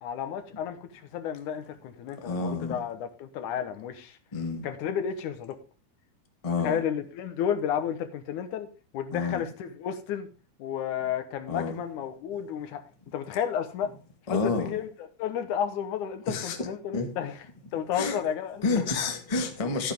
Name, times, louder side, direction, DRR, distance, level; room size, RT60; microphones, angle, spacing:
voice 1, 0.0-4.2 4.6-5.6 6.6-8.7 8.9-10.3 10.6-12.8 13.1-13.9 14.3-17.4 17.7-18.8 19.6-19.9, left 8 dB, 80° left, 2.6 m, -32 dB
voice 2, 2.2-2.8 4.3-4.6 6.4-6.8 9.1-9.4 11.5-11.7 14.3-14.7 16.3-16.7 16.9-17.1 17.9-18.2 18.6-19.9, left 4 dB, 20° left, 1.0 m, -29 dB
12.0 x 9.9 x 3.6 m
omnidirectional pair, 3.5 m